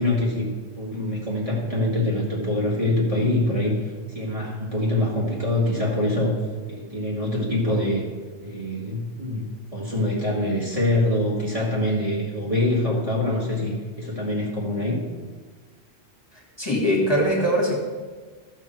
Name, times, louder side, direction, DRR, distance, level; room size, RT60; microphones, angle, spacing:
voice 1, 0.0-6.3 6.7-8.0 8.4-15.0, left 1 dB, 30° right, -5 dB, 2.2 m, -24 dB
voice 2, 16.6-17.8, equal, 20° left, -4 dB, 2.2 m, -21 dB
14.0 x 6.5 x 4.6 m, 1.4 s
omnidirectional pair, 1.1 m